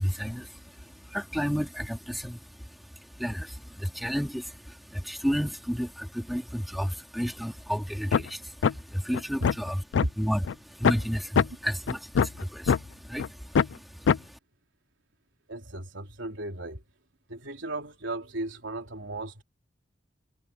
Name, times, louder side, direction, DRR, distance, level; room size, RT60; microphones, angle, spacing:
voice 1, 0.0-9.8 10.2-14.4, equal, ahead, 2.8 m, -32 dB
sound 1, 8.1-8.3 8.6-8.7 9.1-10.1 10.5-10.6 10.8-11.0 11.4-11.5 11.9-12.8 13.2-13.3 13.5-13.7 14.1-14.2, left 6 dB, 85° left, 0.4 m, -22 dB
voice 2, 15.5-16.9 17.3-19.4, right 1 dB, 90° right, 3.4 m, -35 dB
head